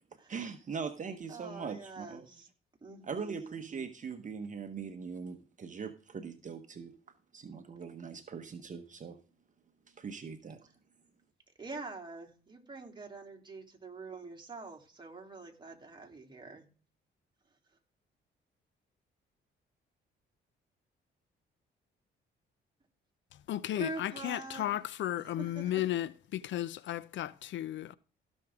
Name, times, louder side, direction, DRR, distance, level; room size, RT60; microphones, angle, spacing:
voice 1, 0.3-2.2 3.0-6.9 7.3-9.2 10.0-10.6, right 5 dB, 40° right, 1.2 m, -41 dB
voice 2, 1.3-2.5 2.8-3.7 11.6-16.6 23.8-24.8 25.2-25.8, right 3 dB, 25° right, 3.1 m, -45 dB
voice 3, 23.5-27.9, left 13 dB, 70° left, 0.6 m, -34 dB
16.0 x 6.3 x 3.6 m
cardioid pair, 90°, 20 cm